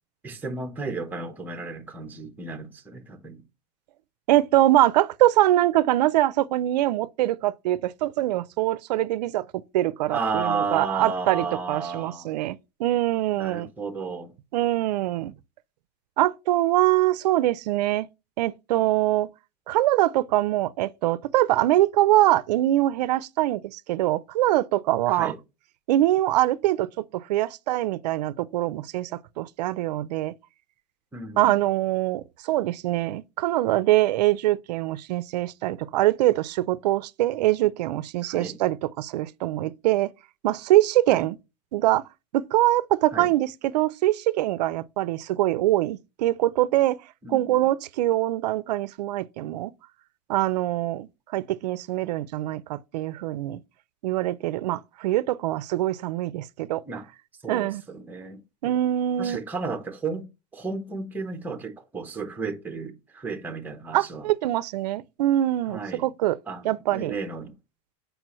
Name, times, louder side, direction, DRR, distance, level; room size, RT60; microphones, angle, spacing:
voice 1, 0.2-3.4 10.1-12.5 13.4-14.3 25.1-25.4 31.1-31.6 38.2-38.6 41.1-41.3 43.1-43.3 47.2-47.7 56.9-57.0 57.4-58.7 59.2-64.3 65.7-66.1 66.5-67.5, right 4 dB, 10° right, 0.8 m, -33 dB
voice 2, 4.3-13.7 14.5-15.3 16.2-18.1 18.4-19.3 19.7-25.3 25.9-30.3 31.4-40.1 40.4-41.4 41.7-42.0 42.3-47.0 47.3-49.7 50.3-53.6 54.0-56.8 57.5-57.8 58.6-59.4 63.9-66.4 66.6-67.2, right 15 dB, 90° right, 0.4 m, -23 dB
7.5 x 5.0 x 3.0 m
supercardioid pair, 155°, 20 cm